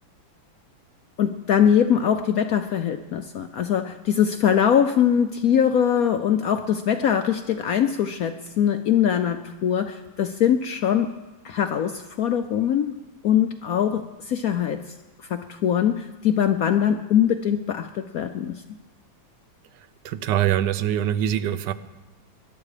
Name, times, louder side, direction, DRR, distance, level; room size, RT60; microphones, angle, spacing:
voice 1, 1.2-11.1 11.4-12.9 13.2-14.8 15.3-18.6, left 9 dB, 75° left, 8 dB, 0.8 m, -22 dB
voice 2, 20.0-21.7, right 11 dB, 70° right, 13 dB, 1.2 m, -23 dB
20.5 x 11.5 x 4.9 m, 1.1 s
omnidirectional pair, 2.2 m